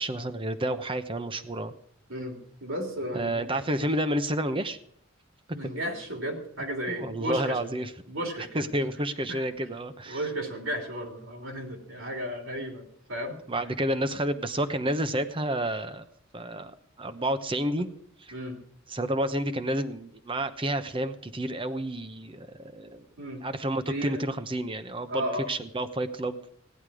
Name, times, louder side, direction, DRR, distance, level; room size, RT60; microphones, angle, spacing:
voice 1, 0.0-1.8 3.1-4.8 6.9-7.9 8.5-10.2 13.5-16.1 16.3-17.9 18.2-18.3 18.9-23.1 23.4-26.4, right 1 dB, 25° right, 10 dB, 0.9 m, -30 dB
voice 2, 2.1-3.5 5.5-7.6 8.1-8.7 9.3-9.4 10.1-13.4 18.3-18.6 23.2-23.4 23.9-24.2 25.1-25.5, right 1 dB, 65° right, 2 dB, 3.4 m, -34 dB
16.5 x 11.0 x 4.9 m, 0.68 s
head